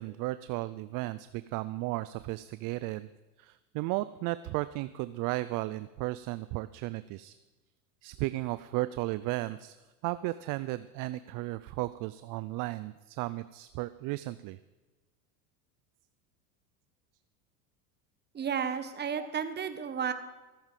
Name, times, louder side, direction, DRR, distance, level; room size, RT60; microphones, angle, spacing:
voice 1, 0.0-3.1 3.4-7.3 8.0-9.8 10.0-14.6 19.2-19.3, right 18 dB, 45° right, 14 dB, 0.5 m, -34 dB
voice 2, 18.3-20.1, right 7 dB, 25° right, 10 dB, 1.3 m, -32 dB
14.5 x 8.8 x 7.4 m, 1.2 s
supercardioid pair, 120°, 44 cm